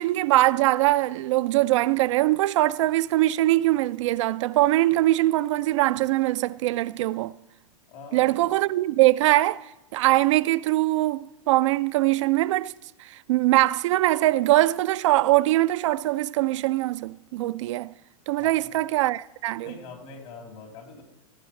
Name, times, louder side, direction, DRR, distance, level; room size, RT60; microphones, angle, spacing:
voice 1, 0.0-7.3 8.1-12.7 13.0-17.9 18.3-19.7, right 17 dB, 70° right, 0.4 m, -22 dB
voice 2, 7.9-8.5 18.3-18.7 19.6-21.0, left 4 dB, 65° left, 3.5 m, -44 dB
16.5 x 7.8 x 3.2 m
hypercardioid pair, 120°, 17 cm